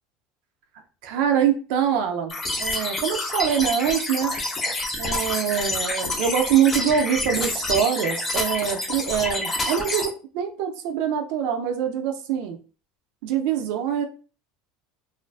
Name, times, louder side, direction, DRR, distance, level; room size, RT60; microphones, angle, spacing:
voice 1, 1.0-2.3 2.6-4.3 5.0-12.6 13.2-14.0, right 8 dB, 60° right, 5 dB, 0.3 m, -24 dB
sound 1, 2.3-10.1, left 2 dB, 20° left, 0.4 m, -28 dB
2.4 x 2.2 x 2.3 m, 0.36 s
cardioid pair, 170°, 0 cm